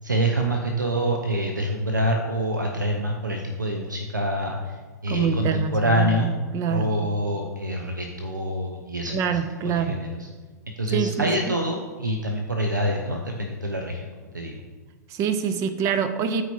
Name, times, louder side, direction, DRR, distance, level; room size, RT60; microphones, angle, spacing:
voice 1, 0.0-6.3 6.7-9.4 9.6-10.3 10.8-14.1 14.3-14.6, right 1 dB, 90° right, 2 dB, 0.7 m, -26 dB
voice 2, 5.1-6.9 9.1-10.0 10.9-11.6 15.1-16.4, right 7 dB, 30° right, 10 dB, 0.6 m, -26 dB
13.0 x 4.6 x 2.8 m, 1.4 s
figure-of-eight pair, 100°, 10 cm